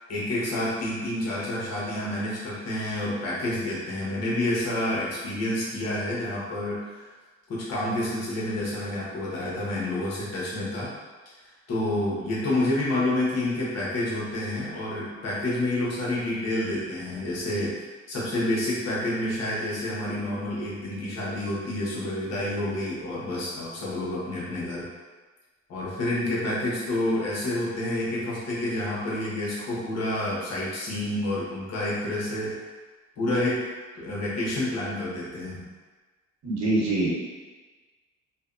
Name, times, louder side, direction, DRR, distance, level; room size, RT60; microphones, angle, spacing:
voice 1, 0.1-7.1 7.5-10.9 11.7-24.9 25.7-32.6 33.2-33.6 33.9-35.6, left 1 dB, 60° left, -6 dB, 1.0 m, -29 dB
voice 2, 36.4-37.1, right 2 dB, 65° right, -5 dB, 0.9 m, -24 dB
2.6 x 2.2 x 2.4 m, 1.3 s
cardioid pair, 90°, 29 cm